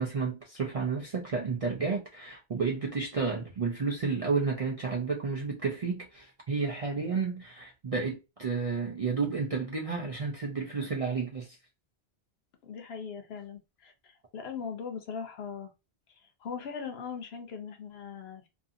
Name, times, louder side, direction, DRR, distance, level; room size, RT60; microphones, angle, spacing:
voice 1, 0.0-11.6, right 4 dB, 50° right, 0.4 m, -31 dB
voice 2, 12.6-15.7 16.4-18.5, left 6 dB, 70° left, 0.9 m, -40 dB
2.6 x 2.5 x 2.6 m
omnidirectional pair, 1.1 m